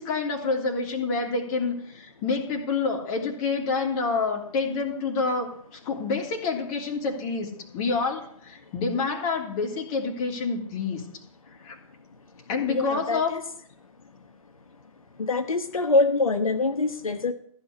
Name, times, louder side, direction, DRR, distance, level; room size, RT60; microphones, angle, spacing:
voice 1, 0.0-11.0 11.6-11.8 12.5-13.3, left 4 dB, 30° left, 0 dB, 3.1 m, -28 dB
voice 2, 12.7-13.4 15.2-17.3, left 3 dB, 70° left, 6 dB, 1.2 m, -24 dB
15.0 x 6.0 x 9.9 m, 0.65 s
figure-of-eight pair, 125°, 18 cm